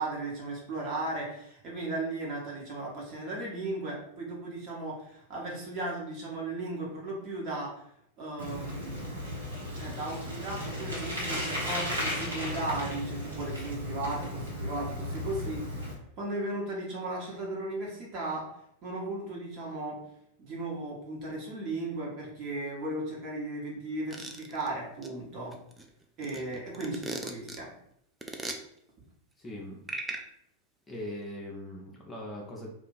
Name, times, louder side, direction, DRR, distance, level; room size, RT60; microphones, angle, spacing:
voice 1, 0.0-7.8 8.2-9.2 9.7-15.6 16.2-18.4 18.8-20.0 20.4-25.5 26.2-27.7, right 2 dB, 35° right, -4 dB, 1.3 m, -36 dB
Bicycle, 8.4-15.9, left 1 dB, 75° right, 1.2 m, -35 dB
sound 1, 24.1-24.7 25.0-25.1 25.5-27.6 28.2-28.6 29.9-30.2, right 2 dB, 10° right, 0.4 m, -37 dB
voice 2, 29.4-29.8 30.9-32.7, left 1 dB, 15° left, -3 dB, 0.8 m, -40 dB
2.8 x 2.5 x 4.0 m, 0.74 s
figure-of-eight pair, 90°, 0 cm